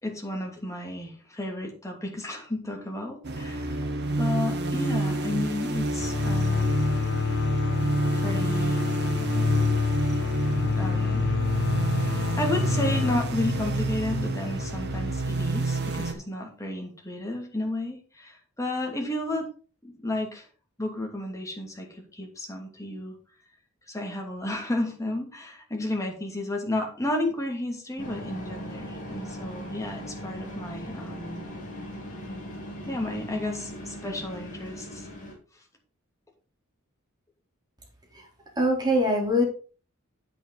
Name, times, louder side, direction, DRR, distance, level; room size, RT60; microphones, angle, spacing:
voice 1, 0.0-3.8 4.2-6.7 8.1-8.8 10.8-11.3 12.0-19.5 19.8-20.5 20.8-23.1 23.9-31.4 32.9-35.1, left 1 dB, 15° left, 1 dB, 2.7 m, -32 dB
sound 1, 3.2-16.1, right 2 dB, 50° right, 1.7 m, -29 dB
sound 2, 6.0-15.5, left 5 dB, 60° left, 0.8 m, -28 dB
sound 3, 28.0-35.3, equal, 40° left, 4.0 m, -39 dB
voice 2, 38.6-39.4, equal, 20° right, -1 dB, 4.0 m, -23 dB
9.6 x 8.3 x 4.1 m, 0.37 s
head